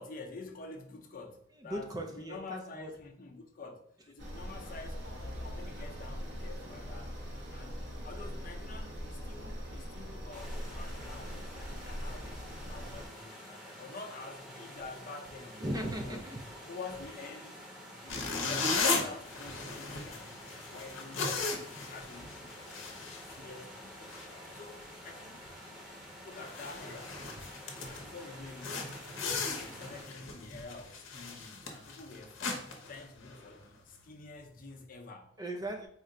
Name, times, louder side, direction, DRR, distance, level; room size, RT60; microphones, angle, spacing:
voice 1, 0.0-7.1 7.5-7.8 8.0-15.6 16.0-16.2 16.7-17.6 18.0-22.7 23.2-24.2 24.5-25.5 26.2-27.2 27.8-28.9 29.5-35.4, left 3 dB, 45° left, 0.6 m, -48 dB
voice 2, 1.6-2.9 15.6-16.4 35.4-35.9, right 1 dB, 20° right, 0.4 m, -37 dB
sound 1, 4.2-13.1, equal, 60° right, 0.9 m, -41 dB
sound 2, 10.3-30.0, equal, 5° right, 0.8 m, -49 dB
sound 3, 18.1-23.8 24.1-24.3 24.8-25.0 25.4-25.5 26.0-26.1 26.3-28.1 28.6-33.6, left 4 dB, 80° left, 0.8 m, -37 dB
4.4 x 2.1 x 3.7 m
head